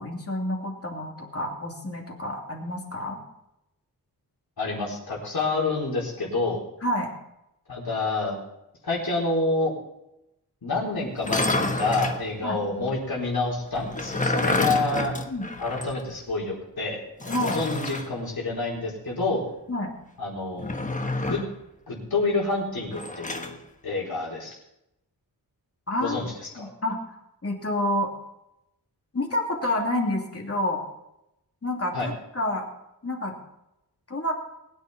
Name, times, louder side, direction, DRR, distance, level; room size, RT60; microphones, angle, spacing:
voice 1, 0.0-3.2 6.8-7.1 12.4-12.6 15.3-15.5 17.3-17.6 19.7-19.9 25.9-26.2 26.6-27.0 27.4-28.1 29.1-30.8 31.6-32.7 33.0-33.3 34.1-34.3, left 1 dB, 35° left, 0 dB, 2.8 m, -28 dB
voice 2, 4.6-6.6 7.7-8.3 8.8-9.7 10.6-15.1 15.6-19.5 20.2-20.8 21.2-21.4 21.9-24.6 26.0-26.7 31.9-32.1, left 3 dB, 65° left, -4 dB, 4.3 m, -28 dB
sound 1, 11.1-12.2 13.7-16.0 16.3-16.4 17.2-18.1 20.6-21.6 22.9-23.5, left 2 dB, 20° left, 1.2 m, -28 dB
21.0 x 10.0 x 4.3 m, 0.86 s
wide cardioid pair, 120°, 39 cm